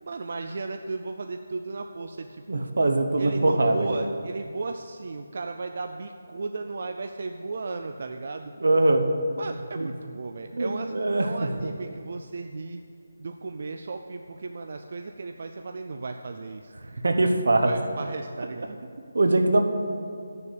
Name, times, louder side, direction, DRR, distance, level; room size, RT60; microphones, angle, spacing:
voice 1, 0.1-2.7 3.2-8.5 9.4-12.8 13.2-16.7 17.6-18.8, right 3 dB, 40° right, 5 dB, 0.3 m, -35 dB
voice 2, 2.5-3.9 8.6-9.0 9.8-9.9 10.5-11.7 17.0-17.8 19.1-19.6, right 2 dB, 70° right, 5 dB, 1.0 m, -22 dB
10.0 x 6.8 x 6.6 m, 2.3 s
hypercardioid pair, 180°, 0 cm